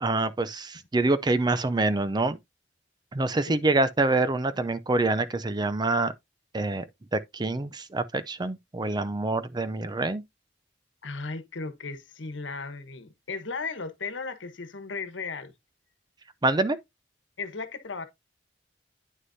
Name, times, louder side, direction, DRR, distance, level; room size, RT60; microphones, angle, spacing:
voice 1, 0.0-2.4 3.1-6.1 6.5-6.8 7.1-10.2 16.4-16.8, right 2 dB, 25° right, 0.5 m, -26 dB
voice 2, 11.0-15.5 17.4-18.1, left 4 dB, 80° left, 1.3 m, -36 dB
9.3 x 6.4 x 2.7 m
head